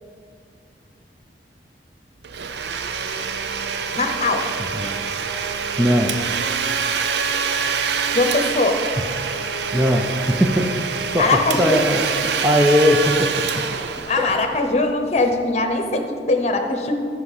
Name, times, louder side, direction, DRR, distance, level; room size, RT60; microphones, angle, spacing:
Domestic sounds home sounds, 2.2-14.8, right 6 dB, 70° right, 0.6 m, -25 dB
voice 1, 3.9-4.5 8.1-8.8 11.2-11.8 14.1-17.1, left 3 dB, 40° left, 5 dB, 0.9 m, -21 dB
voice 2, 5.8-6.2 9.7-10.7 11.1-11.3 11.6-12.0 12.4-13.4, equal, 10° right, 1 dB, 0.5 m, -18 dB
14.5 x 5.9 x 4.2 m, 2.4 s
head